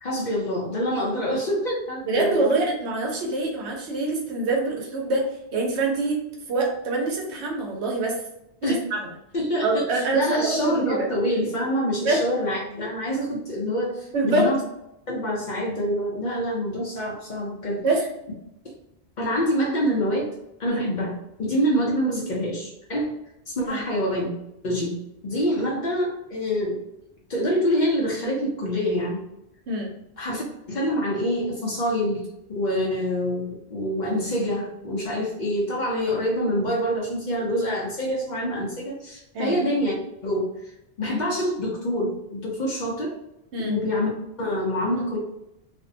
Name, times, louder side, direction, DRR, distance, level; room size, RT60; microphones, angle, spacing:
voice 1, 0.0-2.5 8.6-8.8 9.3-14.6 15.1-17.8 19.2-20.3 20.6-23.1 23.5-24.4 24.6-26.8 27.3-29.2 30.2-32.2 32.6-39.9 40.2-40.5 41.0-43.1 43.6-44.1 44.4-45.2, equal, 50° left, -3 dB, 0.6 m, -26 dB
voice 2, 2.1-5.2 5.5-6.2 6.5-8.2 8.6-9.1 9.6-11.1 12.0-12.2 14.1-14.5 17.8-18.0 20.7-20.8 23.6-23.8 29.7-29.9 39.3-39.6 43.5-43.8, right 2 dB, 80° right, 0 dB, 1.0 m, -25 dB
2.5 x 2.1 x 2.6 m, 0.84 s
omnidirectional pair, 1.2 m